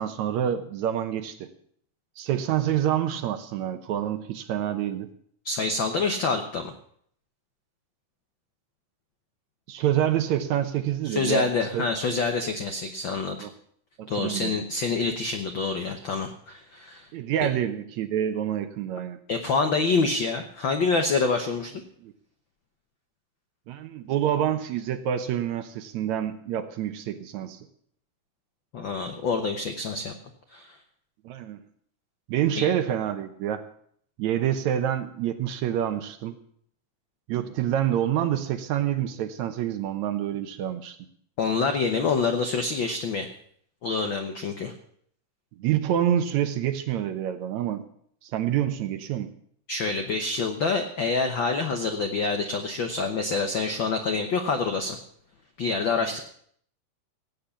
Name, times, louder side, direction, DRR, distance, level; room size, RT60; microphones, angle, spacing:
voice 1, 0.0-1.5 2.2-5.1 9.7-12.2 13.4-13.5 14.0-14.6 17.1-19.2 22.0-22.1 23.7-27.6 31.2-31.6 32.3-33.6 34.2-36.4 37.3-41.0 45.6-47.8 48.2-49.3 56.0-56.1, right 10 dB, 70° right, 10 dB, 1.9 m, -27 dB
voice 2, 5.4-6.7 11.0-13.4 14.1-17.1 19.3-21.8 28.7-30.1 30.5-30.8 32.6-32.7 41.4-43.3 43.8-44.7 49.7-55.0 55.6-56.2, left 4 dB, 85° left, 6 dB, 1.0 m, -26 dB
17.0 x 8.3 x 7.1 m, 0.64 s
omnidirectional pair, 3.7 m